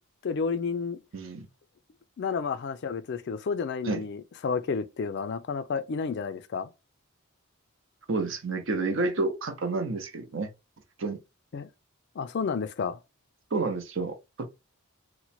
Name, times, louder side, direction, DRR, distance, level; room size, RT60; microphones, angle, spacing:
voice 1, 0.2-1.0 2.2-6.7 11.5-11.7 12.2-13.0, left 5 dB, 50° left, 0.3 m, -31 dB
voice 2, 1.1-1.5 3.8-4.0 8.1-10.5 11.0-11.2 13.5-14.5, right 3 dB, 60° right, 0.7 m, -30 dB
3.0 x 2.1 x 4.1 m
head